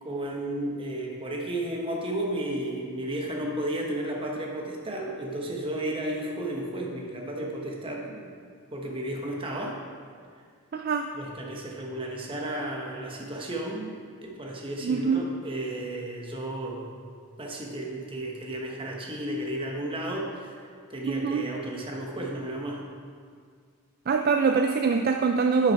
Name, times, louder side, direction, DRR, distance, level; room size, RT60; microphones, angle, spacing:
voice 1, 0.0-8.3 8.7-9.8 11.1-16.9 17.4-22.8, right 1 dB, 25° right, -1 dB, 1.1 m, -33 dB
voice 2, 10.7-11.2 14.8-15.2 21.1-21.5 24.1-25.7, right 5 dB, 45° right, 5 dB, 0.3 m, -24 dB
10.5 x 5.9 x 4.6 m, 2.1 s
head